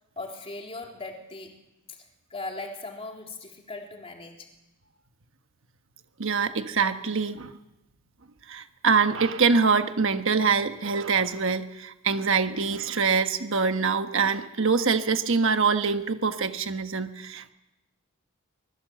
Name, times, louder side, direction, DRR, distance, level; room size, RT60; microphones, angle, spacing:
voice 1, 0.2-1.6 1.9-2.1 2.3-4.5, left 2 dB, 25° left, 1 dB, 3.7 m, -39 dB
voice 2, 6.2-7.5 8.5-17.5, right 5 dB, 60° right, 8 dB, 1.3 m, -24 dB
24.5 x 21.0 x 7.9 m, 0.95 s
head